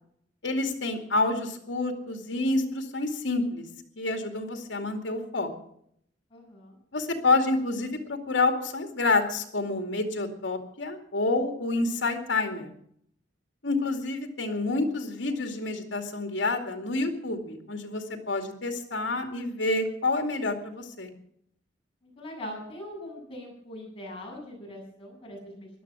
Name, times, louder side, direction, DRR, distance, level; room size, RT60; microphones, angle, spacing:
voice 1, 0.4-3.7 4.0-5.5 6.9-12.7 13.6-21.1, left 3 dB, 75° left, 4 dB, 2.5 m, -28 dB
voice 2, 6.3-6.7 22.0-25.7, left 1 dB, 30° left, -2 dB, 7.9 m, -41 dB
18.0 x 12.0 x 6.3 m, 0.70 s
head